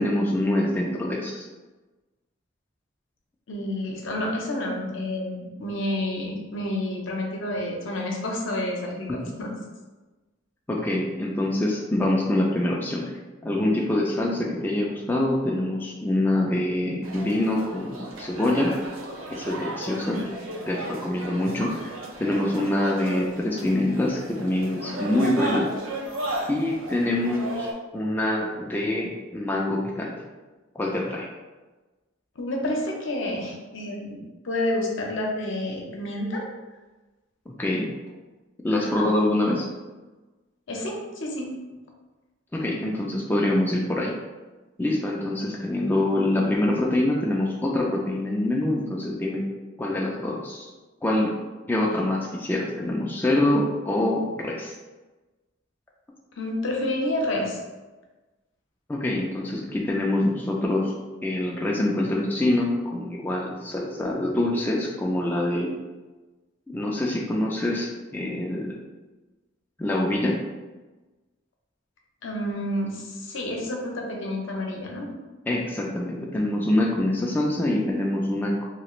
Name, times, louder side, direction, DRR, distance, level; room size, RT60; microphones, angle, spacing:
voice 1, 0.0-1.5 9.1-9.2 10.7-13.1 13.4-18.7 19.3-20.2 20.7-25.7 26.5-27.7 27.9-30.1 30.8-31.3 37.5-37.9 38.6-39.7 42.5-44.1 44.8-49.4 49.8-50.7 51.0-51.3 51.7-54.7 58.9-61.0 61.2-65.7 66.7-68.7 69.8-70.4 75.5-78.6, left 1 dB, 10° left, -2 dB, 0.3 m, -25 dB
voice 2, 3.5-9.5 32.4-36.4 38.7-39.1 40.7-41.5 56.4-57.6 72.2-75.1, left 1 dB, 70° left, 0 dB, 0.7 m, -29 dB
sound 1, 17.0-27.7, right 1 dB, 90° right, 0.5 m, -35 dB
2.9 x 2.4 x 3.0 m, 1.2 s
head